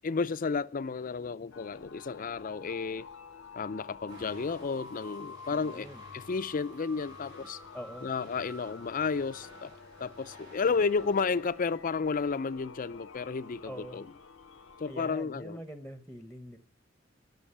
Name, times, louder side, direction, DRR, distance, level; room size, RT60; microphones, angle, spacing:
voice 1, 0.0-3.1 3.5-5.9 6.1-7.6 8.0-9.7 10.0-14.1 14.8-15.6, left 5 dB, 45° left, 0.5 m, -32 dB
sound 1, 1.5-15.0, left 5 dB, 80° left, 0.8 m, -49 dB
sound 2, 4.1-12.3, right 1 dB, 65° right, 6.8 m, -55 dB
voice 2, 5.5-6.0 7.7-8.1 13.6-14.0 14.9-16.6, equal, ahead, 0.9 m, -44 dB
17.0 x 6.2 x 10.0 m
head